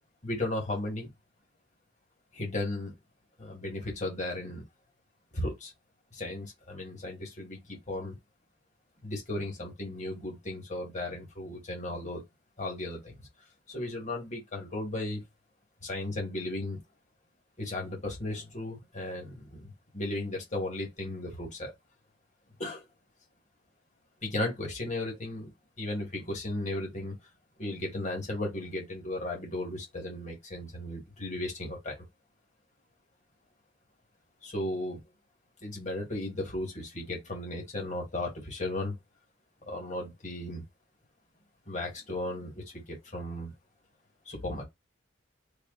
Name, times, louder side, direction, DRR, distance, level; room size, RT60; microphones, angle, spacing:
voice 1, 0.2-1.1 2.3-2.9 3.4-4.6 5.3-5.7 6.1-8.2 9.0-12.2 12.6-13.3 13.7-15.2 15.8-16.8 17.6-21.7 22.6-22.9 24.2-27.2 27.6-32.0 34.4-35.0 35.6-39.0 39.7-40.6 41.7-43.5 44.3-44.6, left 1 dB, 40° left, 2.0 m, -35 dB
3.2 x 2.8 x 4.0 m
head